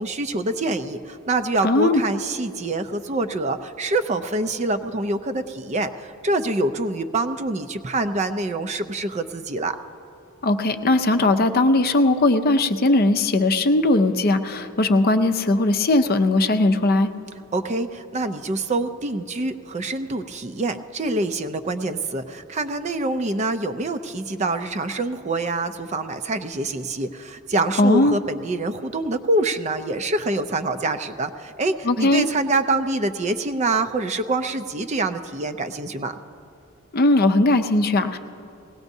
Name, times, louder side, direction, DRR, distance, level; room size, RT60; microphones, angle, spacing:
voice 1, 0.0-9.8 17.5-36.1, right 2 dB, 30° right, 9 dB, 0.5 m, -25 dB
voice 2, 1.6-2.0 10.4-17.1 27.8-28.2 31.8-32.3 36.9-38.2, left 2 dB, 45° left, 8 dB, 0.5 m, -19 dB
20.0 x 17.0 x 2.7 m, 2.7 s
head